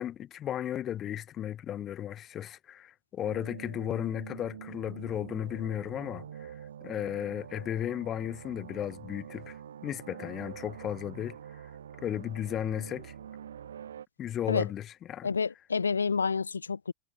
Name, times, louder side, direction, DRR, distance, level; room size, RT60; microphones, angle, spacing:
voice 1, 0.0-6.5 6.8-11.6 12.0-13.1 14.2-15.3, left 11 dB, 30° left, 1.2 m, -35 dB
sound 1, 3.2-14.1, right 9 dB, 65° right, 1.5 m, -46 dB
voice 2, 15.2-16.9, left 5 dB, 75° left, 0.4 m, -29 dB
figure-of-eight pair, 90°, 0 cm